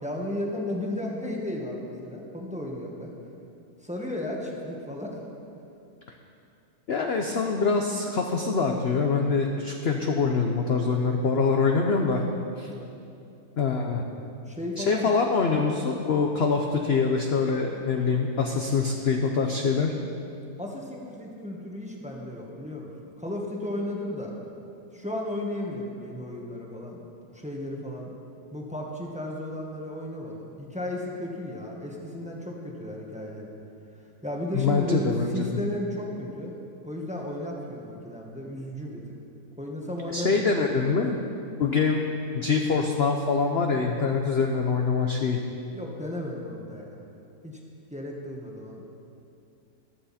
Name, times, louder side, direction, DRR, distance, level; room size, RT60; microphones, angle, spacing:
voice 1, 0.0-3.1 3.8-5.2 12.6-12.9 14.4-15.1 20.6-24.3 24.9-28.1 28.5-33.5 34.2-36.5 36.8-39.0 39.6-40.4 45.7-46.9 47.4-47.6 47.9-48.9, left 1 dB, 5° right, -2 dB, 1.4 m, -34 dB
voice 2, 6.9-12.2 12.6-12.7 13.6-14.0 14.8-19.9 34.5-35.6 40.1-41.2 41.6-42.1 42.3-45.4, left 4 dB, 50° left, 2 dB, 0.8 m, -24 dB
14.5 x 12.5 x 4.3 m, 2.6 s
omnidirectional pair, 1.8 m